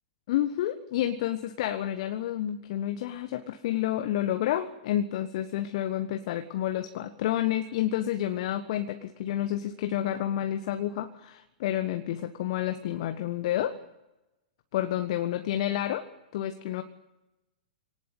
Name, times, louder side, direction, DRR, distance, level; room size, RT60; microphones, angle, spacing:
voice 1, 0.3-13.8 14.7-16.1 16.3-16.8, left 12 dB, 50° left, 9 dB, 1.4 m, -29 dB
25.0 x 18.5 x 8.3 m, 0.97 s
figure-of-eight pair, 105°, 4 cm